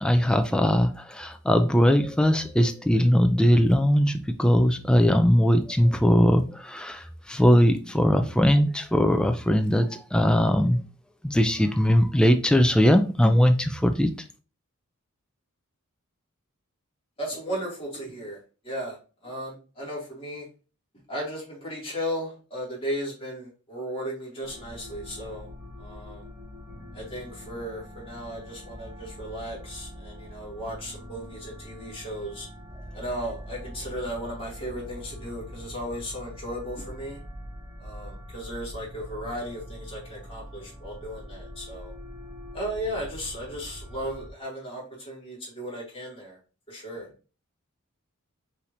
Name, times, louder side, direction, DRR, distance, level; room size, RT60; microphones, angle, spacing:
voice 1, 0.0-10.8 11.2-14.1, equal, 5° left, 7 dB, 0.3 m, -20 dB
voice 2, 17.2-18.4 18.6-19.0 19.2-20.5 21.1-25.5 25.8-26.3 26.9-32.5 32.9-37.2 37.8-41.9 42.5-46.4 46.7-47.1, equal, 25° left, -4 dB, 2.3 m, -35 dB
sound 1, 24.4-44.3, equal, 10° right, 1.1 m, -43 dB
5.6 x 3.3 x 2.6 m, 0.35 s
head